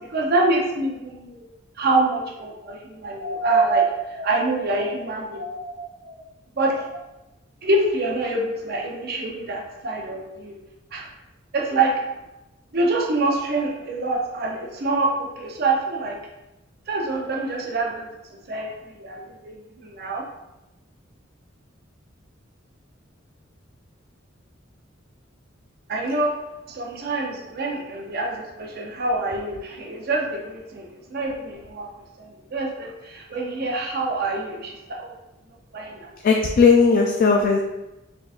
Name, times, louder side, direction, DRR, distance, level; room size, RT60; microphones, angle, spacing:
voice 1, 0.1-1.5 1.8-6.2 6.6-6.9 7.6-10.6 10.9-11.1 11.5-12.0 12.7-16.2 16.9-18.1 18.5-20.2 25.9-26.4 26.7-31.9 32.2-35.1 35.7-36.2, right 2 dB, 55° right, -1 dB, 0.7 m, -25 dB
voice 2, 36.2-37.6, left 5 dB, 45° left, 1 dB, 0.3 m, -17 dB
3.9 x 3.5 x 2.4 m, 0.98 s
head